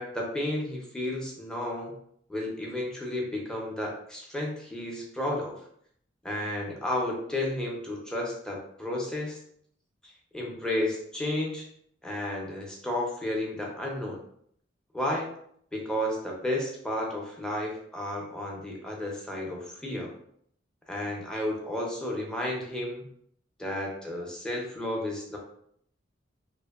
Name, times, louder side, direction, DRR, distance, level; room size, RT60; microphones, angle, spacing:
voice 1, 0.0-2.0 2.3-5.6 6.2-9.4 10.3-11.6 12.0-14.2 14.9-15.3 15.7-20.1 20.9-23.1 23.6-25.4, left 1 dB, 5° left, -2 dB, 0.5 m, -32 dB
2.7 x 2.5 x 2.4 m, 0.67 s
head